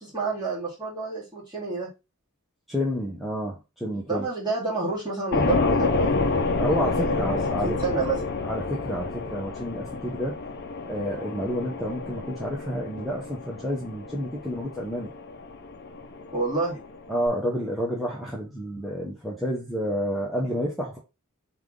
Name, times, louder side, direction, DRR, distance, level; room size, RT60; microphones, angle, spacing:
voice 1, 0.0-1.9 4.0-6.1 7.0-7.1 7.6-8.2 16.3-16.8, right 3 dB, 20° right, -6 dB, 2.1 m, -29 dB
voice 2, 2.7-4.3 6.6-7.8 8.4-10.4 10.8-15.1 17.1-21.0, equal, ahead, -5 dB, 0.9 m, -29 dB
sound 1, 5.3-17.3, left 3 dB, 50° left, 0.6 m, -29 dB
3.5 x 3.5 x 3.7 m, 0.26 s
head